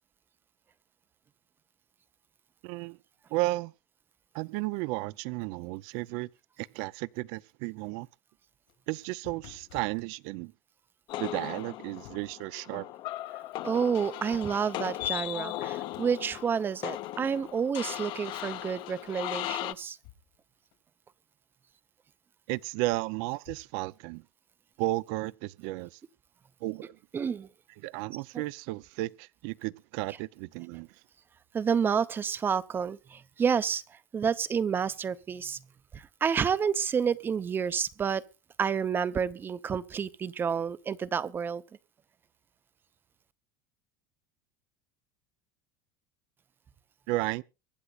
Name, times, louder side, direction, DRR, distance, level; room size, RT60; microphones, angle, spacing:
voice 1, 2.6-3.0 3.3-3.7 4.3-6.3 6.6-8.1 8.9-10.5 11.2-12.9 22.5-24.2 24.8-26.0 26.6-27.0 27.8-30.9 47.1-47.4, right 20 dB, 65° right, 0.5 m, -33 dB
sound 1, 8.5-10.1 11.7-12.5 14.3-14.4 14.7-15.6 15.9-16.2 19.3-20.5 20.7-20.8 22.7-23.7, left 13 dB, 70° left, 3.3 m, -54 dB
sound 2, 11.1-19.7, left 15 dB, 50° left, 0.9 m, -37 dB
voice 2, 13.6-20.0 27.1-27.5 31.5-35.6 35.9-38.2 38.6-41.6, right 6 dB, 20° right, 0.7 m, -29 dB
24.0 x 9.7 x 2.4 m
cardioid pair, 150°, 10 cm